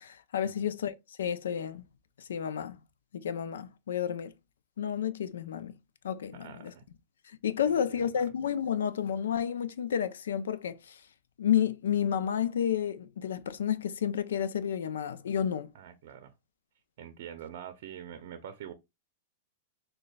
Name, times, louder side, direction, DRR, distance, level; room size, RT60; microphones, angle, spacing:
voice 1, 0.0-1.8 2.2-2.8 3.1-4.3 4.8-5.7 6.0-6.7 7.4-11.0 11.4-15.7, left 9 dB, 85° left, 0.4 m, -31 dB
voice 2, 6.3-6.9 7.7-8.3 15.7-16.3 17.0-18.7, right 9 dB, 65° right, 0.5 m, -45 dB
6.3 x 2.3 x 2.2 m
hypercardioid pair, 130°, 0 cm